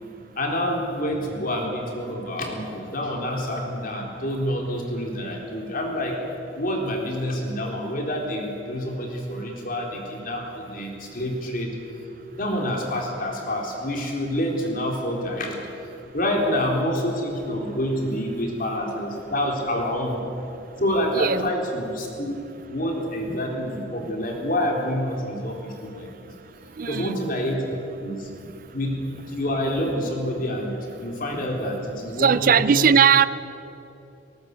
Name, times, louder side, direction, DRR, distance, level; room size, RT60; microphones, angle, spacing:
voice 1, 0.4-6.1 6.5-11.7 12.3-15.6 16.1-20.2 20.8-22.4 22.7-26.3 26.8-27.6 28.0-28.3 28.7-28.9 29.3-33.0, equal, 50° left, 0 dB, 4.0 m, -27 dB
voice 2, 21.1-21.5 26.8-27.2 32.2-33.3, right 7 dB, 50° right, 16 dB, 0.4 m, -18 dB
19.0 x 19.0 x 8.3 m, 2.9 s
head